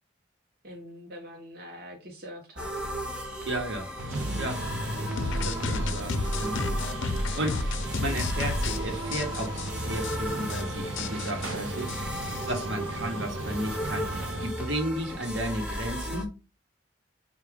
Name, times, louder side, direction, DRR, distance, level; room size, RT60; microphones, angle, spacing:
voice 1, 0.6-2.7, equal, 50° right, 0.8 m, -44 dB
sound 1, 2.6-16.3, equal, 5° right, 0.6 m, -35 dB
voice 2, 3.5-3.9 4.4-4.6 5.1-6.6 7.1-7.7 8.0-11.9 12.5-16.3, right 1 dB, 70° right, 1.1 m, -33 dB
sound 2, 4.0-14.5, right 2 dB, 90° right, 0.6 m, -36 dB
sound 3, 5.2-8.8 9.1-9.7 10.0-10.2 10.4-10.6 11.0-12.7, left 3 dB, 80° left, 0.6 m, -31 dB
4.7 x 2.4 x 3.5 m
head